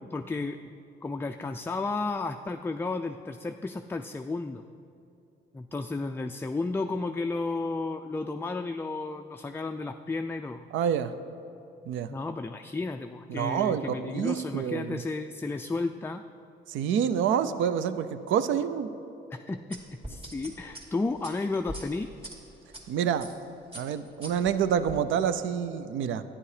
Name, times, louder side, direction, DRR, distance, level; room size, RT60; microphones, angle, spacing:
voice 1, 0.1-0.6 1.0-4.6 5.5-10.6 12.1-16.2 19.3-22.1, left 3 dB, 10° left, 6 dB, 0.3 m, -33 dB
voice 2, 10.7-11.1 11.9-12.1 13.3-15.0 16.7-18.9 22.9-23.3 23.8-26.2, right 8 dB, 80° right, 13 dB, 0.5 m, -27 dB
sound 1, 19.7-22.8 23.2-23.4 23.7-25.0, right 1 dB, 30° right, 2.4 m, -43 dB
11.0 x 9.8 x 4.9 m, 2.7 s
cardioid pair, 90°, 20 cm